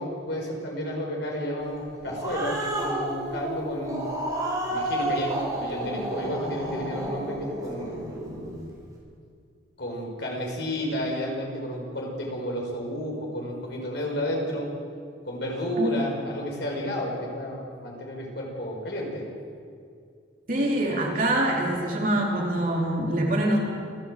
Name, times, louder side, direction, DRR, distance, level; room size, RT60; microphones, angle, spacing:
voice 1, 0.0-4.1 4.7-8.0 9.8-14.7 15.3-19.3, equal, 65° left, 0 dB, 5.6 m, -31 dB
Growling, 1.8-8.6, right 1 dB, 20° right, 6.7 m, -31 dB
voice 2, 20.5-23.6, right 1 dB, 45° right, -2 dB, 4.1 m, -24 dB
28.0 x 14.0 x 7.8 m, 2.3 s
head